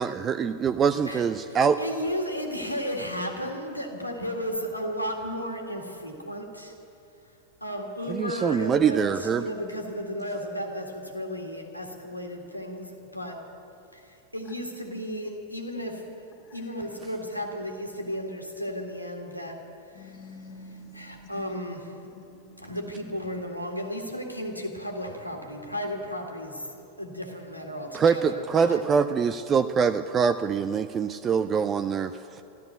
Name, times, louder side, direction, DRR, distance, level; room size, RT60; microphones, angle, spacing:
voice 1, 0.0-1.8 8.1-9.5 27.9-32.4, right 6 dB, 25° right, 10 dB, 0.4 m, -24 dB
voice 2, 1.8-6.7 7.6-13.4 13.9-14.0 14.3-16.2 16.5-19.6 20.9-21.9 22.6-28.8, equal, 90° left, 2 dB, 1.8 m, -34 dB
voice 3, 19.9-21.6 22.1-22.8 31.4-31.6, left 3 dB, 40° left, 2 dB, 2.3 m, -47 dB
13.5 x 13.5 x 8.0 m, 2.8 s
figure-of-eight pair, 90°, 0 cm